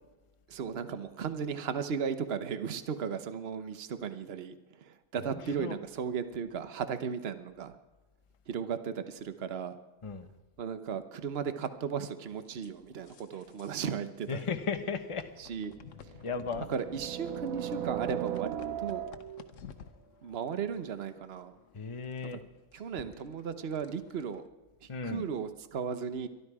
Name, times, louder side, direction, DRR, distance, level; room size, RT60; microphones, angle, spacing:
voice 1, 0.5-7.8 8.5-9.8 10.6-14.4 15.4-15.7 16.0-16.2 16.7-19.0 20.2-21.5 22.7-24.4 24.8-26.3, right 7 dB, 50° right, 11 dB, 1.1 m, -36 dB
voice 2, 5.2-5.8 10.0-10.3 14.3-15.3 16.2-16.7 21.7-22.4 24.9-25.3, left 5 dB, 25° left, 7 dB, 0.9 m, -36 dB
sound 1, 12.5-14.0 14.3-14.4 15.2-24.5, left 7 dB, 70° left, 1.2 m, -54 dB
sound 2, 14.9-15.0 16.0-19.5, right 11 dB, 90° right, 1.1 m, -37 dB
22.5 x 12.5 x 4.8 m, 1.2 s
omnidirectional pair, 1.4 m